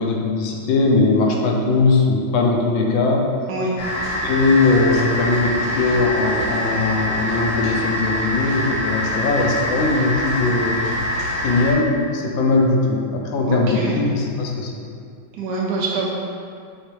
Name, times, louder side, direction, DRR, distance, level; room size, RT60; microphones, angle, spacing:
voice 1, 0.0-3.3 4.2-10.8 11.4-14.7, left 3 dB, 80° left, 0 dB, 1.3 m, -20 dB
sound 1, 3.8-11.7, left 1 dB, 60° left, 1.1 m, -24 dB
voice 2, 13.5-14.0 15.3-16.1, right 3 dB, 75° right, -4 dB, 0.9 m, -24 dB
4.8 x 3.2 x 3.0 m, 2.3 s
omnidirectional pair, 2.2 m